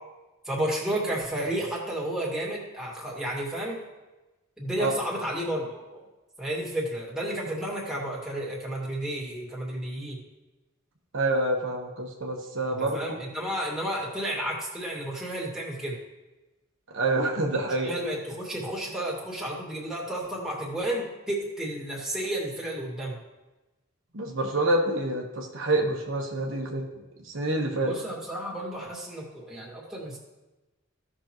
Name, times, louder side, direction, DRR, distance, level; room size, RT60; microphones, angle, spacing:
voice 1, 0.5-3.8 4.6-6.0 6.4-10.2 12.8-16.0 17.8-23.1 27.8-30.2, right 1 dB, ahead, -4 dB, 2.2 m, -32 dB
voice 2, 11.1-13.0 16.9-17.9 24.1-26.9 27.3-27.9, right 2 dB, 65° right, 0 dB, 1.2 m, -27 dB
15.5 x 6.2 x 3.0 m, 1.1 s
head